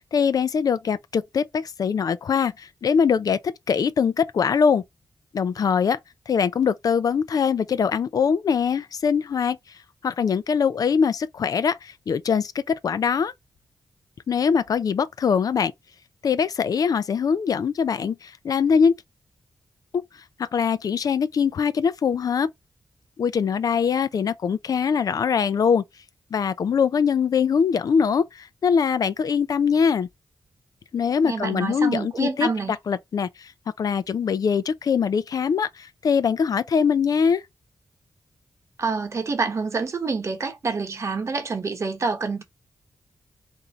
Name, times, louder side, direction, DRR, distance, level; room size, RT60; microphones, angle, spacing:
voice 1, 0.0-4.8 5.3-6.0 6.3-9.6 10.0-13.3 14.3-15.7 16.2-18.9 19.9-20.0 20.4-22.5 23.2-25.8 26.3-30.1 30.9-32.5 32.9-33.5 33.8-37.4, left 6 dB, 65° left, 0.5 m, -22 dB
voice 2, 31.2-32.7 38.8-42.4, right 4 dB, 45° right, 1.2 m, -27 dB
3.8 x 2.7 x 4.2 m
wide cardioid pair, 110°, 7 cm